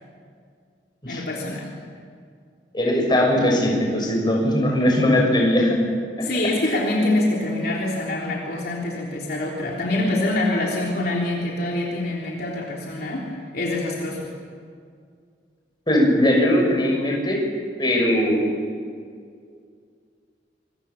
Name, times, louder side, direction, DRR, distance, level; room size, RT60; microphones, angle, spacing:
voice 1, 1.1-1.7 6.2-14.3, left 1 dB, 55° left, -2 dB, 3.5 m, -25 dB
voice 2, 2.7-5.8 6.2-6.3 15.9-17.4 17.8-18.5, left 1 dB, 25° left, 0 dB, 6.2 m, -19 dB
27.0 x 24.0 x 7.1 m, 2.2 s
head